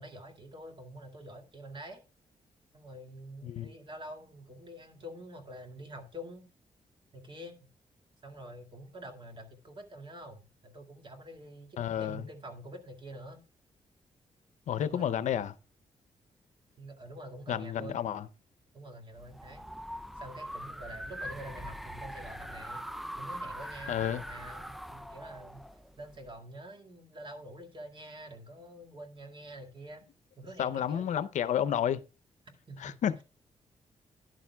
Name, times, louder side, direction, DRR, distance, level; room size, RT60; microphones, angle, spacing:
voice 1, 0.0-2.0 2.7-6.5 7.1-7.7 8.2-13.4 14.7-15.4 16.8-18.0 18.7-19.6 20.2-22.9 23.2-25.6 26.0-30.0 30.4-31.3 32.7-33.0, right 1 dB, 40° right, 2.1 m, -47 dB
voice 2, 3.4-3.7 11.8-12.2 14.7-15.5 17.5-18.2 23.9-24.2 30.6-32.0 32.8-33.2, left 9 dB, 75° left, 0.6 m, -31 dB
sound 1, 19.1-26.3, equal, ahead, 0.4 m, -42 dB
12.0 x 10.5 x 2.3 m
cardioid pair, 90°, 12 cm